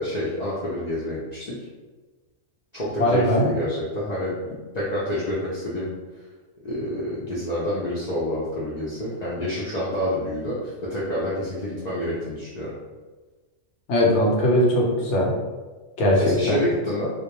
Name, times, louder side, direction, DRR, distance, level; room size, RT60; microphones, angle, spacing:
voice 1, 0.0-1.5 2.7-5.9 6.6-12.7 16.2-17.1, left 1 dB, 85° left, -8 dB, 0.3 m, -28 dB
voice 2, 3.0-3.5 13.9-15.3 16.0-16.6, left 1 dB, 70° left, -2 dB, 0.9 m, -20 dB
2.2 x 2.2 x 2.9 m, 1.3 s
omnidirectional pair, 1.3 m